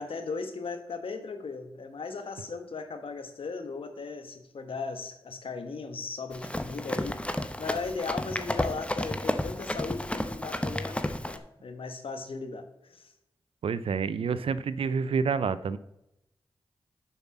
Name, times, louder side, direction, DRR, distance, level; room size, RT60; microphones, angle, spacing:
voice 1, 0.0-13.1, left 4 dB, 75° left, 7 dB, 1.2 m, -37 dB
Run, 6.3-11.4, left 1 dB, 10° left, 0.9 m, -32 dB
voice 2, 13.6-15.8, right 5 dB, 80° right, 16 dB, 0.5 m, -28 dB
7.1 x 5.7 x 7.2 m, 0.84 s
cardioid pair, 45°, 9 cm